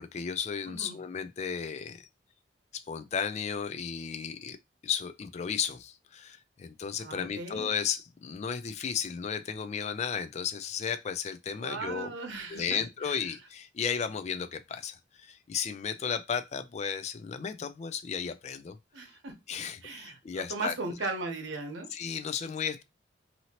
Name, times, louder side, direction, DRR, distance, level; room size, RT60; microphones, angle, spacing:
voice 1, 0.0-2.1 2.7-4.6 4.8-12.1 12.5-18.8 19.5-20.7 21.9-22.8, left 7 dB, 35° left, 0.3 m, -34 dB
voice 2, 0.7-1.0 7.0-7.7 11.6-13.2 18.9-19.3 19.8-21.9, right 3 dB, 85° right, 0.9 m, -37 dB
2.8 x 2.7 x 2.8 m
head